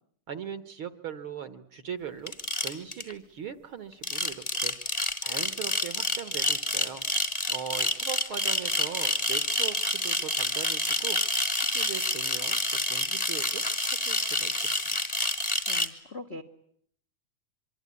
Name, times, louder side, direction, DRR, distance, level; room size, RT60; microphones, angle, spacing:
voice 1, 0.3-7.0 7.5-11.2 11.5-14.8, right 8 dB, 55° right, 11 dB, 1.8 m, -40 dB
sound 1, 2.3-3.1 3.9-15.9, left 1 dB, 15° left, 1.3 m, -28 dB
voice 2, 15.7-16.4, left 2 dB, 35° left, 9 dB, 1.0 m, -41 dB
25.0 x 24.5 x 9.7 m, 0.66 s
omnidirectional pair, 3.5 m